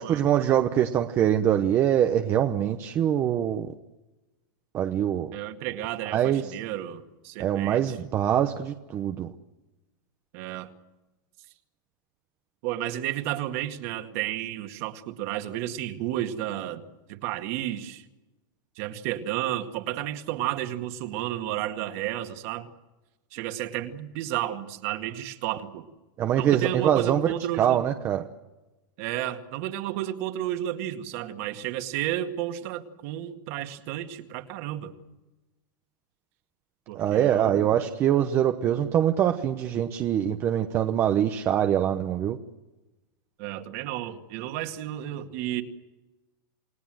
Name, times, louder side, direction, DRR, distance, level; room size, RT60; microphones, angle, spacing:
voice 1, 0.0-3.7 4.7-5.3 6.1-6.4 7.4-9.3 26.2-28.2 36.9-42.4, right 10 dB, 20° right, 6 dB, 0.9 m, -24 dB
voice 2, 5.3-8.0 10.3-10.7 12.6-16.8 17.1-18.0 18.8-22.7 23.3-25.9 26.4-27.8 29.0-34.9 36.9-37.7 43.4-45.6, right 13 dB, 45° right, 6 dB, 2.1 m, -32 dB
29.0 x 19.0 x 7.8 m, 1.1 s
supercardioid pair, 170°, 11 cm